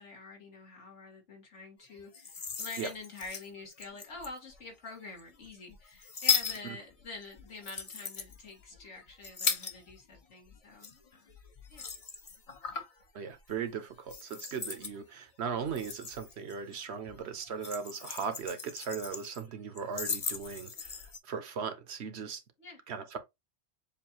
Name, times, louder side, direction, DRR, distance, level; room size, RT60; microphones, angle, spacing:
voice 1, 0.0-11.4 11.7-11.9 22.6-22.8, left 3 dB, 80° left, 2.1 m, -47 dB
sound 1, 2.0-4.6 5.2-10.2 10.4-13.0 13.4-13.7 14.1-15.0 15.5-16.8 17.1-19.4 19.7-21.2, left 5 dB, 40° left, 0.7 m, -37 dB
voice 2, 13.1-22.4 22.9-23.2, right 6 dB, 65° right, 1.0 m, -38 dB
7.1 x 2.5 x 2.9 m
omnidirectional pair, 1.2 m